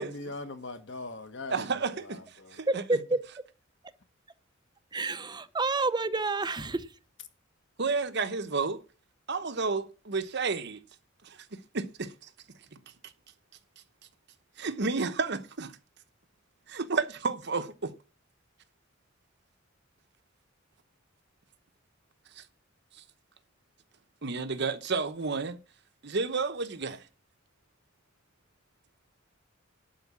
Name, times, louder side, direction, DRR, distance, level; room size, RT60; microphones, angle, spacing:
voice 1, 0.0-2.6, left 2 dB, 65° left, 1.7 m, -41 dB
voice 2, 1.5-2.2 2.5-2.8 7.8-8.8 9.3-10.8 11.2-11.4 11.7-12.1 14.6-15.7 16.7-17.9 22.4-22.5 24.2-25.6 26.0-27.0, right 4 dB, 55° right, 1.0 m, -31 dB
voice 3, 2.7-3.2 4.9-6.9, right 3 dB, 20° right, 0.7 m, -29 dB
11.5 x 4.7 x 8.4 m
head